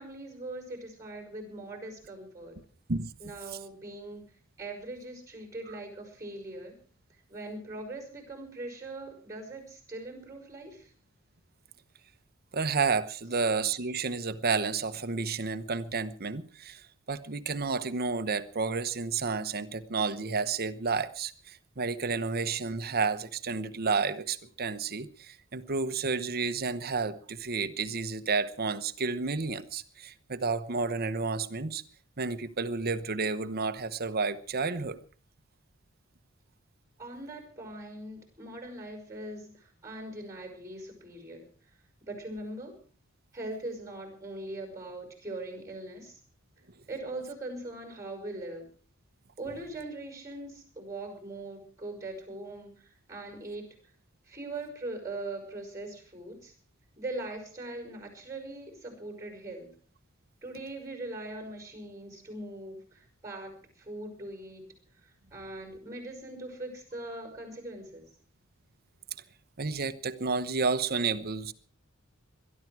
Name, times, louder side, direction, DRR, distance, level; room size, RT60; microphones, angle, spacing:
voice 1, 0.0-2.5 3.2-4.2 4.6-6.7 7.3-10.9 37.0-41.4 42.0-42.7 43.3-46.2 46.9-48.6 49.4-53.6 54.3-56.5 57.0-59.7 60.4-64.6 65.0-68.1, right 2 dB, 15° right, 5.8 m, -41 dB
voice 2, 12.5-31.8 32.2-35.0 69.6-71.5, right 4 dB, 45° right, 1.0 m, -31 dB
22.0 x 12.0 x 4.8 m
head